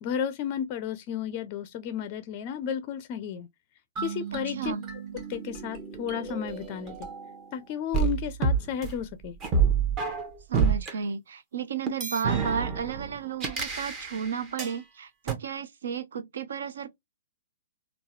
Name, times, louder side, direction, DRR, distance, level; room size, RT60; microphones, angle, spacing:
voice 1, 0.0-3.5 4.0-4.8 5.1-6.9 7.5-9.3, left 8 dB, 35° left, 0.4 m, -33 dB
sound 1, 4.0-7.5 7.9-10.9 11.9-14.8 15.3-15.4, right 6 dB, 25° right, 1.0 m, -29 dB
voice 2, 4.5-4.8 10.5-16.9, right 6 dB, 60° right, 0.6 m, -33 dB
3.9 x 2.3 x 2.5 m
figure-of-eight pair, 120°, 0 cm